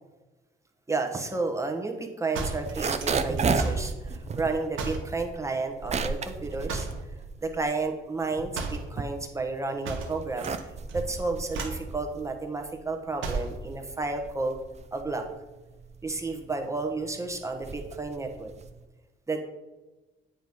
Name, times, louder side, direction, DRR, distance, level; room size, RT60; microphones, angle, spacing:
voice 1, 0.9-6.9 7.4-14.6 14.9-15.2 16.0-18.5 19.3-19.4, right 3 dB, 15° right, 3 dB, 1.0 m, -32 dB
sound 1, 2.3-3.9 4.7-5.1 6.7-7.1 8.5-8.9 9.8-10.6 10.9-11.2 11.5-11.9 13.2-13.6, right 3 dB, 80° right, 1.2 m, -34 dB
sound 2, 2.5-7.8 8.2-9.6 10.1-18.8, right 5 dB, 35° right, 0.5 m, -33 dB
9.0 x 3.1 x 5.4 m, 1.2 s
cardioid pair, 90°, 20 cm